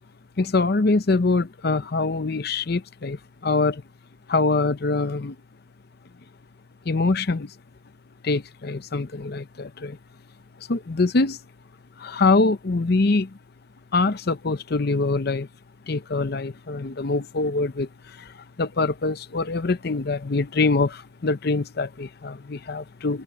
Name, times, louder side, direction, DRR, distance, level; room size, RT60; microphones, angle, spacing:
voice 1, 0.4-3.8 4.3-5.4 6.9-7.5 8.2-10.0 10.7-11.4 12.0-13.4 13.9-15.5 15.9-23.2, left 3 dB, 55° left, 0.7 m, -24 dB
head